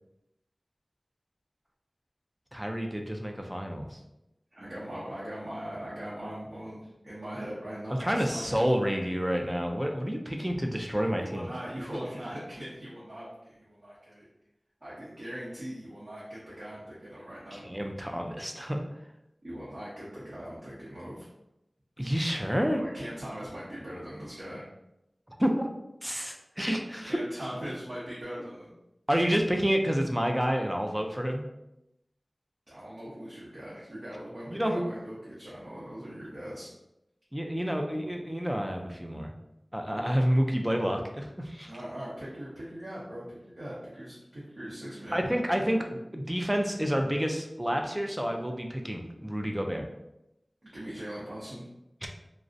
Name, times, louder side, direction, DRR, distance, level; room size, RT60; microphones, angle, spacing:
voice 1, 2.5-4.0 8.0-11.5 17.5-18.8 22.0-22.8 25.4-25.7 26.0-27.2 29.1-31.4 34.5-34.8 37.3-39.3 39.7-41.7 45.1-49.9 52.0-52.1, equal, 10° right, 3 dB, 0.3 m, -29 dB
voice 2, 4.5-8.7 11.2-14.3 14.8-17.6 19.4-21.3 22.8-24.6 27.0-28.7 32.7-36.7 41.6-45.2 50.6-51.6, equal, 65° right, -9 dB, 0.7 m, -40 dB
2.4 x 2.0 x 2.5 m, 0.87 s
wide cardioid pair, 50°, 0 cm